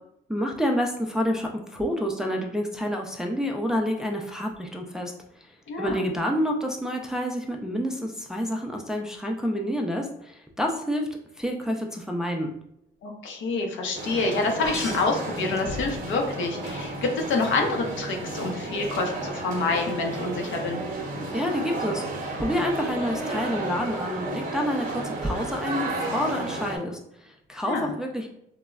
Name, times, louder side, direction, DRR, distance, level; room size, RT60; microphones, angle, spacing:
voice 1, 0.3-5.5 5.8-11.1 11.4-12.5 21.3-28.3, equal, 5° right, 1 dB, 0.3 m, -28 dB
voice 2, 5.7-6.1 13.0-20.8 27.7-27.9, left 3 dB, 75° left, 2 dB, 0.6 m, -27 dB
sound 1, 13.9-26.8, right 2 dB, 45° right, 0.7 m, -33 dB
sound 2, 14.6-16.2 16.7-17.3 18.9-19.0, left 1 dB, 15° left, 0.7 m, -37 dB
3.0 x 2.0 x 2.3 m, 0.76 s
cardioid pair, 90°, 20 cm